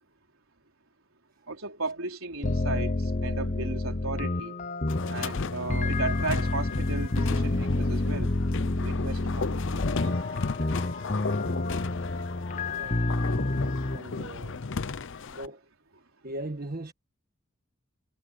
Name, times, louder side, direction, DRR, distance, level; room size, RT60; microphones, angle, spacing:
voice 1, 1.5-4.5 5.1-8.3 8.8-9.5, right 3 dB, 70° right, 4.1 m, -35 dB
sound 1, 2.4-14.0, left 2 dB, 35° left, 0.9 m, -29 dB
sound 2, 4.9-15.5, left 4 dB, 60° left, 0.7 m, -35 dB
voice 2, 12.7-13.0 13.9-14.6 15.3-15.6 16.2-16.9, right 1 dB, 45° right, 1.5 m, -38 dB
head